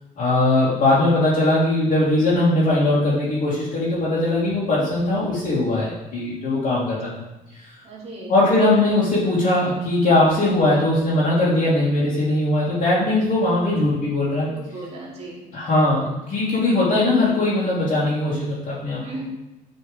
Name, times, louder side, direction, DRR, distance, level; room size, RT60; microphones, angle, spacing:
voice 1, 0.2-7.2 7.5-7.7 8.3-14.5 15.5-19.0, left 2 dB, 50° left, -11 dB, 2.4 m, -20 dB
voice 2, 7.8-8.3 14.5-15.4 19.0-19.2, right 2 dB, 40° right, -4 dB, 2.4 m, -36 dB
8.5 x 4.2 x 3.6 m, 0.98 s
cardioid pair, 110°, 17 cm